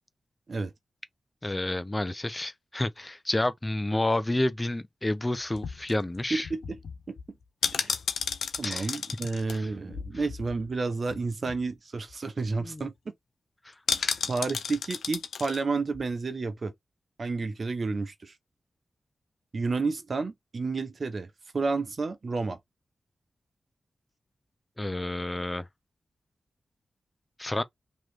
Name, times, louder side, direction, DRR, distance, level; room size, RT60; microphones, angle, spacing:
voice 1, 1.4-6.5 8.6-9.0 9.5-9.7 12.6-12.9 13.6-14.2 24.8-25.7 27.4-27.6, left 1 dB, 25° left, 0.7 m, -30 dB
sound 1, 5.5-10.8 11.1-11.2 11.5-11.7 12.1-12.2 12.4-12.8 13.9-15.6 15.9-16.1, left 6 dB, 85° left, 0.5 m, -33 dB
voice 2, 6.3-6.8 7.1-7.2 7.8-7.9 8.6-12.9 14.3-16.7 17.2-18.4 19.5-22.6, right 3 dB, 60° right, 0.8 m, -31 dB
3.1 x 3.1 x 4.0 m
cardioid pair, 40°, 0 cm